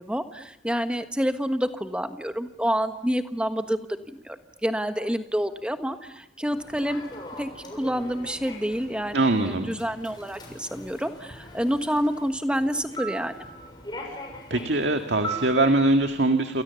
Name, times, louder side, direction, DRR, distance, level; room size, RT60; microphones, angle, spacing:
voice 1, 0.0-3.8 4.1-7.1 7.4-9.1 9.4-13.3, equal, 5° right, 8 dB, 1.4 m, -28 dB
Human voice / Subway metro underground, 6.5-16.0, right 1 dB, 25° left, 6.9 m, -40 dB
voice 2, 9.1-9.7 14.5-16.6, right 2 dB, 80° right, 6 dB, 1.9 m, -22 dB
29.0 x 28.0 x 7.0 m, 0.79 s
head